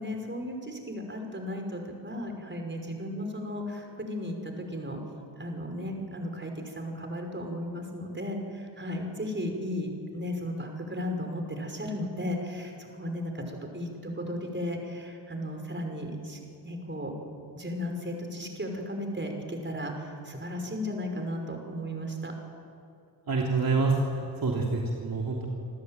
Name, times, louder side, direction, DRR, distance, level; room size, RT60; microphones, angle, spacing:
voice 1, 0.0-5.0 5.4-17.1 17.6-22.3, left 1 dB, 25° right, 4 dB, 5.7 m, -35 dB
voice 2, 23.3-25.5, right 3 dB, 55° right, -1 dB, 3.2 m, -27 dB
27.5 x 13.5 x 9.2 m, 2.4 s
supercardioid pair, 55°, 43 cm